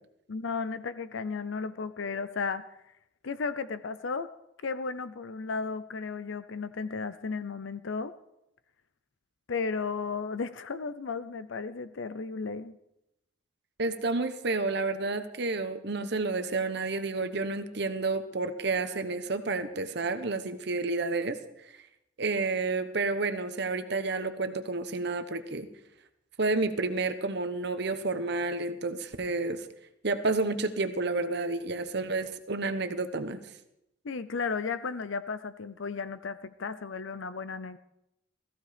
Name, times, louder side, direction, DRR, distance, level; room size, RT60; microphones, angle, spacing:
voice 1, 0.3-2.6 3.2-4.3 4.6-8.1 9.5-12.8 34.0-37.8, left 4 dB, 70° left, 14 dB, 0.6 m, -34 dB
voice 2, 13.8-21.4 22.2-25.7 26.4-29.7 30.0-33.4, right 3 dB, 55° right, 9 dB, 1.0 m, -30 dB
17.5 x 15.0 x 5.1 m, 0.85 s
head